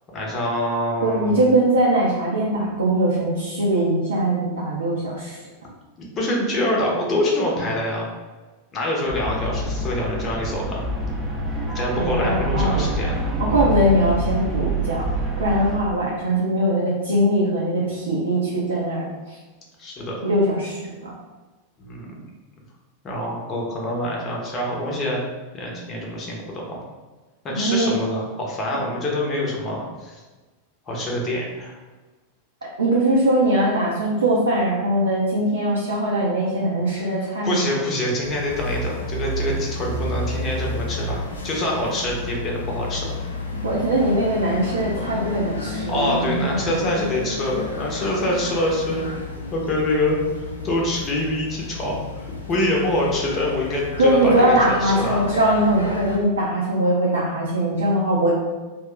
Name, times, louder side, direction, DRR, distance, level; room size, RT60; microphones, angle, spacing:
voice 1, 0.1-1.5 6.0-8.1 8.7-10.9 11.7-13.1 19.8-20.2 21.8-22.1 23.0-25.2 25.5-26.8 27.4-30.2 30.9-31.8 37.4-43.1 45.9-49.1 49.5-55.3, left 1 dB, 30° left, -2 dB, 0.8 m, -25 dB
voice 2, 1.0-5.4 12.0-12.9 13.4-19.4 20.2-21.1 27.5-27.9 32.8-37.6 43.6-46.8 54.0-58.4, right 1 dB, 70° right, -5 dB, 0.5 m, -21 dB
sound 1, 9.1-15.8, right 1 dB, 15° right, 0.7 m, -26 dB
sound 2, 38.2-56.2, left 2 dB, 75° left, 0.4 m, -31 dB
2.5 x 2.1 x 3.6 m, 1.2 s
figure-of-eight pair, 90°, 0 cm